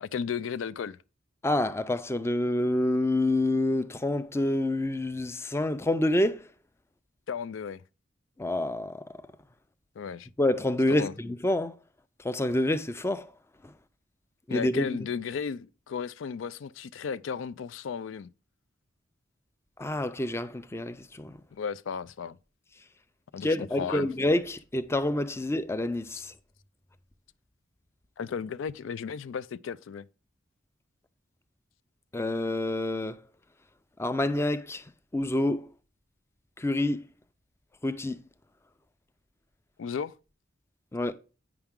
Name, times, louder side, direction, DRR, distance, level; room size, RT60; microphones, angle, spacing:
voice 1, 0.0-1.0 7.3-7.8 10.0-10.3 10.9-11.1 14.5-18.3 21.5-22.4 23.3-24.1 26.1-26.2 28.2-30.1 39.8-40.1, left 6 dB, 80° left, 0.4 m, -34 dB
voice 2, 1.4-6.5 8.4-9.0 10.4-11.7 12.2-13.3 14.5-14.9 19.8-21.4 23.4-26.3 32.1-33.2 34.0-34.8 35.1-35.7 36.6-37.0 37.8-38.2 40.9-41.1, left 1 dB, 15° left, 0.4 m, -27 dB
8.9 x 5.8 x 3.6 m
head